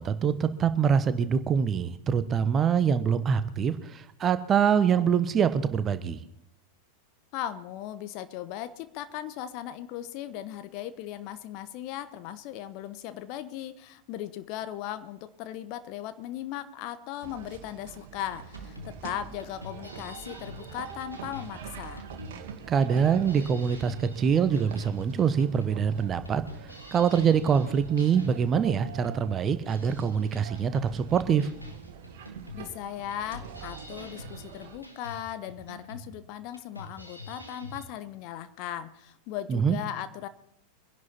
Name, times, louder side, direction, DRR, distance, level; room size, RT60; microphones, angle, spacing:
voice 1, 0.0-6.2 22.7-26.4 26.9-31.5 39.5-39.8, right 7 dB, 25° right, 12 dB, 1.0 m, -24 dB
voice 2, 7.3-22.1 32.5-40.3, left 11 dB, 45° left, 12 dB, 1.0 m, -38 dB
sound 1, 17.2-34.8, right 7 dB, 55° right, 2.0 m, -45 dB
sound 2, 18.3-37.8, left 1 dB, 90° left, 1.9 m, -46 dB
24.0 x 11.0 x 4.4 m, 0.77 s
figure-of-eight pair, 90°, 0 cm